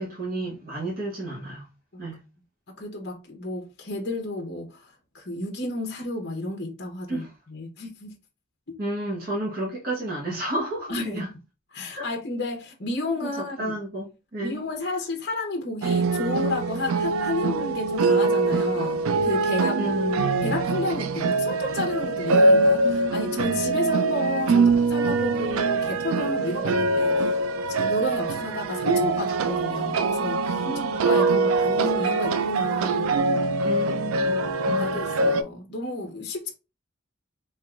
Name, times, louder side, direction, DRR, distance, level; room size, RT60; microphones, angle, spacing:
voice 1, 0.0-1.7 2.0-2.2 7.1-7.3 8.8-11.3 12.0-12.1 13.2-14.1 14.3-14.9 19.8-20.6 24.5-24.8 30.6-31.5 33.6-35.2, right 1 dB, 45° right, 1.2 m, -32 dB
voice 2, 2.8-4.9 5.1-8.1 10.9-11.3 11.7-13.7 14.4-19.9 20.4-27.4 27.8-33.1 34.8-36.5, left 2 dB, 50° left, 0.9 m, -32 dB
sound 1, 15.8-35.4, right 3 dB, 85° right, 0.4 m, -23 dB
4.6 x 2.9 x 2.4 m
head